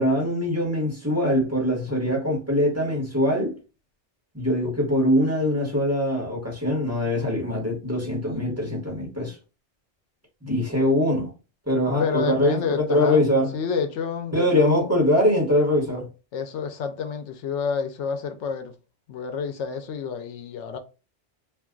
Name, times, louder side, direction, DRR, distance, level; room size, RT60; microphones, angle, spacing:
voice 1, 0.0-3.5 4.3-9.3 10.4-11.3 11.7-13.5 14.3-16.0, left 1 dB, 15° right, 1.2 m, -23 dB
voice 2, 1.9-2.2 7.5-7.6 12.0-14.9 16.3-18.7 19.1-20.8, left 6 dB, 85° left, 0.9 m, -29 dB
2.5 x 2.3 x 3.6 m
omnidirectional pair, 1.2 m